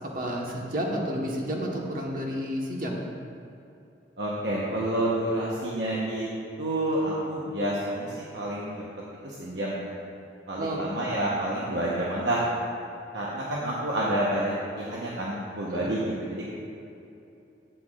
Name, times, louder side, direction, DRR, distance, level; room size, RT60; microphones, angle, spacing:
voice 1, 0.0-3.0 10.6-10.8 15.7-15.9, equal, 50° right, -2 dB, 1.3 m, -31 dB
voice 2, 4.2-6.3 6.6-8.7 9.2-9.9 10.5-12.4 13.1-16.5, right 1 dB, 75° right, -6 dB, 1.1 m, -29 dB
12.0 x 8.4 x 2.5 m, 2.7 s
head